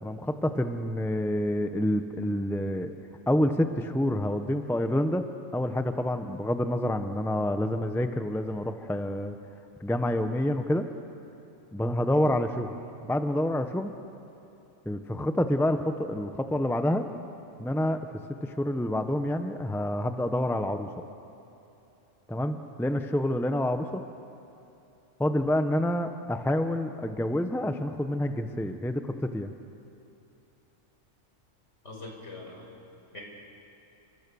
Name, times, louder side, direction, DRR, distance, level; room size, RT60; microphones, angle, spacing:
voice 1, 0.0-2.9 3.3-5.2 5.5-9.3 9.8-10.9 11.7-12.7 13.0-13.9 14.9-17.0 17.6-18.0 18.4-20.9 22.3-24.0 25.2-29.5, left 1 dB, ahead, 7 dB, 0.8 m, -28 dB
voice 2, 31.8-32.7 33.1-33.2, left 2 dB, 65° left, 0 dB, 5.5 m, -43 dB
29.5 x 25.5 x 7.0 m, 3.0 s
omnidirectional pair, 1.4 m